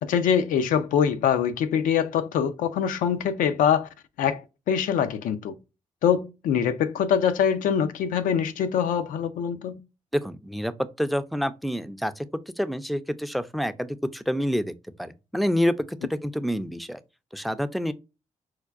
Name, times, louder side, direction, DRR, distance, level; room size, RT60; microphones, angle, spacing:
voice 1, 0.0-3.9 4.2-5.5 6.0-9.8, left 8 dB, 90° left, 0.4 m, -24 dB
voice 2, 10.1-12.3 12.6-14.7 15.0-17.0 17.3-17.9, equal, ahead, 0.4 m, -27 dB
4.5 x 2.2 x 2.3 m
cardioid pair, 60°, 13 cm